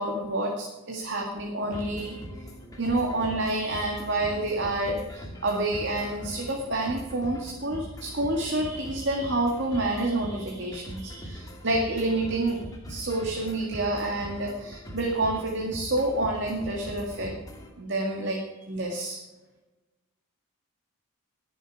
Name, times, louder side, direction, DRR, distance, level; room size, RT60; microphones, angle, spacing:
voice 1, 0.0-2.2 2.8-17.3 17.8-18.4 18.7-19.2, right 2 dB, 55° right, 0 dB, 2.0 m, -28 dB
sound 1, 1.7-17.7, equal, 15° left, 2.1 m, -41 dB
21.0 x 7.2 x 4.9 m, 1.1 s
head